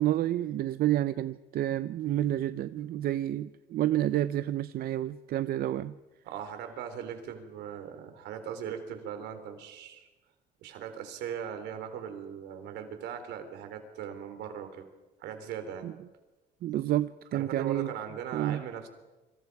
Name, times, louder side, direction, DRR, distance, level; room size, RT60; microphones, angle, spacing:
voice 1, 0.0-5.9 15.8-15.9 16.6-17.9 18.3-18.6, right 13 dB, 65° right, 13 dB, 0.7 m, -29 dB
voice 2, 6.3-10.1 10.6-14.9 15.2-15.9 17.3-18.9, right 8 dB, 85° right, 7 dB, 3.6 m, -39 dB
27.5 x 25.0 x 4.8 m, 1.1 s
cardioid pair, 110°, 17 cm